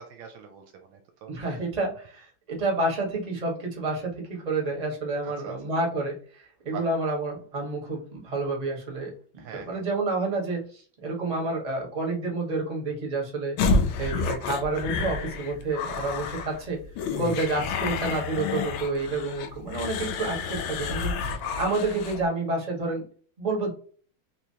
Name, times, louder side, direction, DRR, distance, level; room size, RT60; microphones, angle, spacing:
voice 1, 0.0-1.6 5.2-5.5 6.7-6.9 9.4-9.8 21.4-21.5, right 7 dB, 75° right, 5 dB, 1.3 m, -43 dB
voice 2, 1.3-13.6 14.0-16.8 17.2-23.0 23.4-23.7, right 2 dB, 25° right, -1 dB, 1.1 m, -29 dB
sound 1, 13.6-22.2, left 4 dB, 75° left, 1.4 m, -29 dB
3.6 x 3.1 x 2.7 m, 0.42 s
omnidirectional pair, 2.3 m